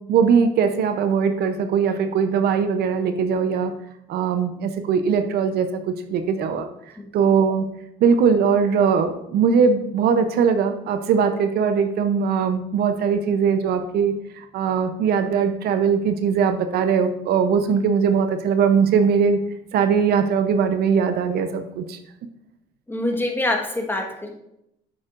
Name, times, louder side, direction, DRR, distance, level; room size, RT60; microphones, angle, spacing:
voice 1, 0.1-3.7 4.1-6.7 7.1-7.7 8.0-19.4 19.7-22.0, right 6 dB, 70° right, 8 dB, 0.7 m, -20 dB
voice 2, 7.0-7.4 22.9-24.3, left 1 dB, 10° left, 2 dB, 1.4 m, -26 dB
9.1 x 7.3 x 2.5 m, 0.82 s
cardioid pair, 110°, 17 cm